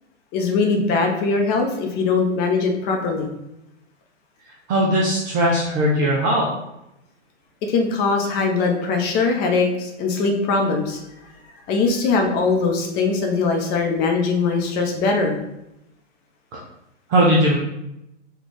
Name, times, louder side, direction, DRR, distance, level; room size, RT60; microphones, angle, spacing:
voice 1, 0.3-3.3 7.7-11.0 11.7-15.4, left 4 dB, 25° left, 3 dB, 0.7 m, -21 dB
voice 2, 4.7-6.5 17.1-17.6, equal, 20° right, -3 dB, 0.3 m, -18 dB
4.4 x 2.3 x 4.6 m, 0.87 s
hypercardioid pair, 125°, 36 cm